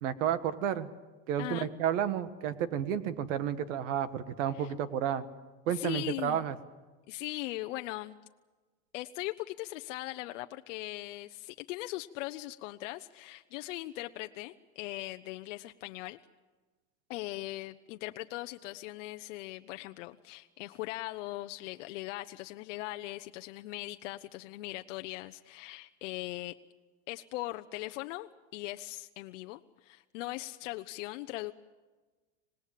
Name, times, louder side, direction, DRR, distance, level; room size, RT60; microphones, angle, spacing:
voice 1, 0.0-0.9 1.3-5.2 5.7-6.5, right 9 dB, 75° right, 12 dB, 1.6 m, -31 dB
voice 2, 1.4-1.7 4.5-4.7 5.7-6.5 7.1-8.2 8.9-16.2 17.1-26.5 27.1-31.5, left 18 dB, 75° left, 7 dB, 0.8 m, -40 dB
26.0 x 19.0 x 7.6 m, 1.3 s
supercardioid pair, 150°, 38 cm